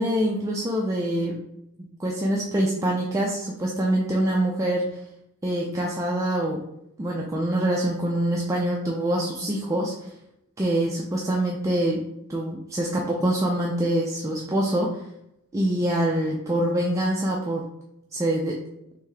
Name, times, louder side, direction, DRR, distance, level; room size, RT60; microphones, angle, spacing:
voice 1, 0.0-1.4 1.8-4.8 5.4-6.6 7.0-9.9 10.6-12.0 12.3-15.0 15.5-17.6 18.1-18.6, right 1 dB, 15° right, -3 dB, 0.3 m, -25 dB
3.4 x 2.6 x 3.6 m, 0.81 s
head